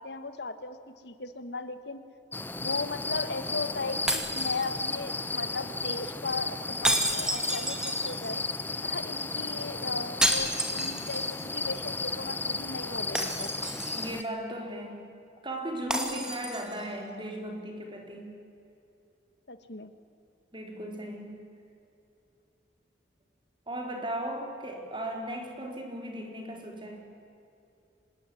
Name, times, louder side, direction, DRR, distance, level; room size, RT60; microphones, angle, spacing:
voice 1, 0.0-2.0 2.5-8.4 8.8-13.5 19.5-19.9, left 3 dB, 65° left, 10 dB, 1.5 m, -37 dB
sound 1, 2.3-14.2, left 3 dB, 10° left, 0.7 m, -34 dB
sound 2, 4.1-5.2 6.8-8.4 10.2-11.4 11.7-11.8 13.2-14.2 15.9-16.8, right 1 dB, 5° right, 2.4 m, -30 dB
voice 2, 13.9-15.0 15.4-18.4 20.5-21.5 23.7-27.0, right 1 dB, 25° right, 3 dB, 4.4 m, -37 dB
25.5 x 20.0 x 10.0 m, 2.7 s
head